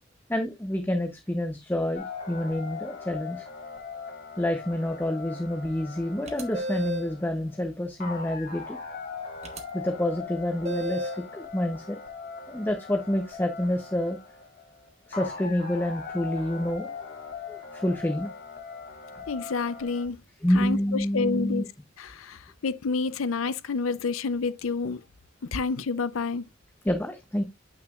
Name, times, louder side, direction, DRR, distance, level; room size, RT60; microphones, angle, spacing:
voice 1, 0.3-3.5 4.4-8.8 9.7-12.0 12.5-14.2 15.1-16.9 17.5-18.3 20.4-21.6 26.8-27.4, left 1 dB, 10° left, 0.8 m, -28 dB
sound 1, 1.9-20.0, left 5 dB, 45° left, 2.6 m, -40 dB
sound 2, 6.3-7.1 9.4-9.6 10.6-11.3, equal, 35° right, 1.3 m, -32 dB
voice 2, 19.3-20.2 20.5-21.7 22.0-25.0 25.4-26.4, left 4 dB, 80° left, 0.6 m, -29 dB
8.4 x 5.9 x 2.4 m
head